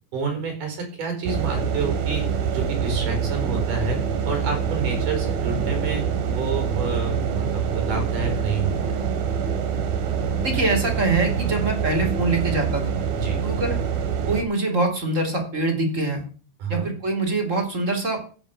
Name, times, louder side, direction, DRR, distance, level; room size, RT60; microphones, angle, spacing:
voice 1, 0.1-9.1 13.2-13.4 16.6-16.9, right 4 dB, 60° right, 4 dB, 6.0 m, -29 dB
sound 1, 1.3-14.4, right 7 dB, 85° right, 3.7 m, -25 dB
voice 2, 10.4-13.0 13.4-13.8 14.3-16.2 16.7-18.2, right 2 dB, 20° right, 1 dB, 3.5 m, -24 dB
15.0 x 7.1 x 7.3 m, 0.39 s
omnidirectional pair, 4.2 m